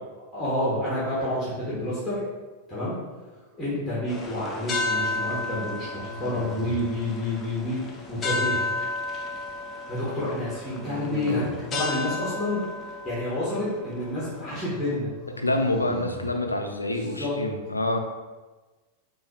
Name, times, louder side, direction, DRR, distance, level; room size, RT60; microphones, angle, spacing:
voice 1, 0.3-2.2 2.7-3.0 3.6-8.6 9.9-11.4 11.7-12.6 13.0-15.1 16.9-17.3, left 1 dB, 5° left, -9 dB, 1.0 m, -29 dB
sound 1, 3.3-3.9 6.0-7.0 10.7-11.8 15.1-16.4, right 1 dB, 40° right, 0.8 m, -39 dB
sound 2, 4.1-15.0, left 3 dB, 25° left, 0.5 m, -33 dB
voice 2, 15.4-18.0, left 2 dB, 80° left, 4 dB, 0.3 m, -26 dB
4.0 x 2.2 x 2.8 m, 1.2 s
figure-of-eight pair, 90°, 0 cm